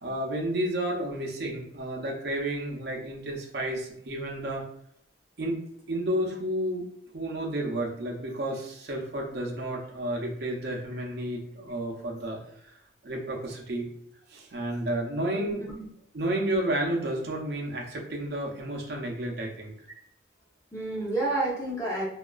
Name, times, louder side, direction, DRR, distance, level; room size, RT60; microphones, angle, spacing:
voice 1, 0.0-4.6 5.4-5.6 5.9-6.9 7.1-12.7 13.0-13.8 14.3-15.6 16.1-19.7, right 1 dB, 60° right, -1 dB, 0.5 m, -31 dB
voice 2, 15.3-15.8 20.7-22.1, right 2 dB, 20° left, -5 dB, 0.7 m, -30 dB
2.8 x 2.3 x 2.3 m, 0.75 s
head